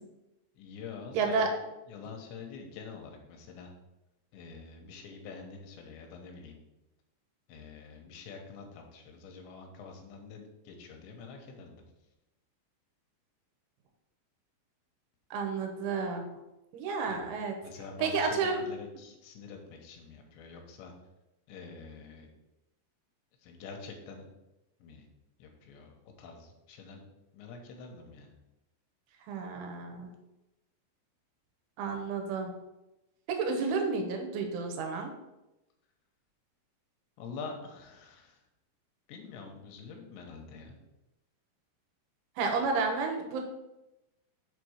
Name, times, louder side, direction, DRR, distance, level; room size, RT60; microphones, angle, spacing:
voice 1, 0.6-1.5 1.9-3.7 4.3-6.6 7.5-11.8 17.1-17.3 17.6-20.9 21.5-22.3 23.4-24.3 24.8-25.0 25.4-28.3 37.2-38.4 39.1-40.8, left 5 dB, 75° left, 3 dB, 3.2 m, -46 dB
voice 2, 1.1-1.5 15.3-16.2 16.7-17.6 18.0-18.7 29.3-30.1 31.8-32.5 33.3-35.1 42.4-43.4, right 4 dB, 85° right, 3 dB, 3.5 m, -31 dB
7.3 x 4.2 x 6.3 m, 0.97 s
omnidirectional pair, 5.4 m